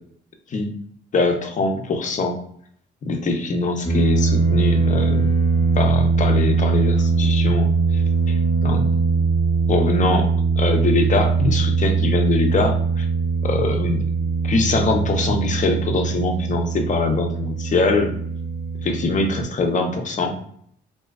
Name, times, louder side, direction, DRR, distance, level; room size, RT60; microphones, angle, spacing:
voice 1, 1.1-2.4 3.0-5.3 5.8-8.0 8.3-8.4 8.6-8.9 9.7-10.3 10.6-13.0 13.4-14.0 14.4-18.1 18.8-20.4, left 3 dB, 40° left, 4 dB, 0.5 m, -22 dB
sound 1, 3.8-19.4, right 4 dB, 15° left, 0.8 m, -21 dB
2.6 x 2.2 x 2.2 m, 0.64 s
cardioid pair, 90°, 20 cm